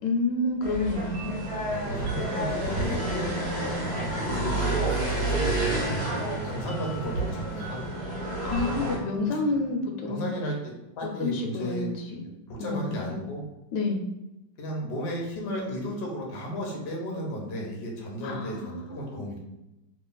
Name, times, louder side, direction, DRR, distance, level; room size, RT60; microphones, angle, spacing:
voice 1, 0.0-1.4 8.4-10.3 11.2-12.2 12.6-13.2 13.7-14.0 18.2-19.2, left 3 dB, 80° left, 3 dB, 1.3 m, -29 dB
sound 1, 0.6-9.0, right 2 dB, 40° right, 1.1 m, -30 dB
sound 2, 1.1-10.5, right 3 dB, 80° right, 0.7 m, -40 dB
voice 2, 1.7-3.3 4.2-8.0 10.0-11.9 12.5-13.4 14.6-19.4, equal, 50° left, -1 dB, 0.7 m, -34 dB
3.2 x 2.4 x 3.9 m, 0.95 s
omnidirectional pair, 2.0 m